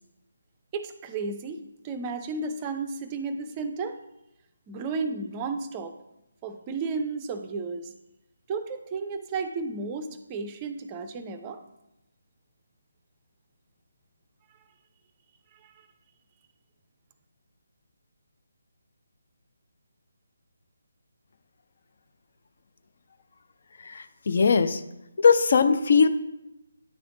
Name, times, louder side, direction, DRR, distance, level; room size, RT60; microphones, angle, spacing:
voice 1, 0.7-4.0 4.7-5.9 6.4-7.9 8.5-11.6 15.6-15.7, right 4 dB, 20° right, 9 dB, 0.4 m, -33 dB
voice 2, 24.3-24.8 25.2-26.1, left 5 dB, 45° left, 10 dB, 0.5 m, -19 dB
9.7 x 3.4 x 3.7 m, 0.91 s
figure-of-eight pair, 150°, 0 cm